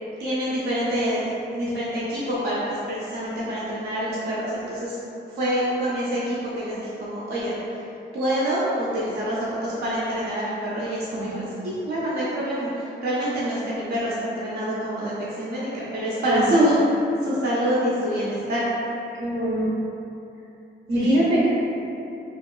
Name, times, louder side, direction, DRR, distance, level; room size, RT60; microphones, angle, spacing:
voice 1, 0.2-5.0 5.3-7.8 8.1-16.8 17.2-18.7 20.9-21.2, equal, 60° right, -7 dB, 0.5 m, -26 dB
voice 2, 11.1-11.5 16.3-16.5 19.2-19.7 20.9-21.5, right 1 dB, 85° right, -6 dB, 0.8 m, -23 dB
2.9 x 2.8 x 2.3 m, 2.8 s
wide cardioid pair, 165°, 19 cm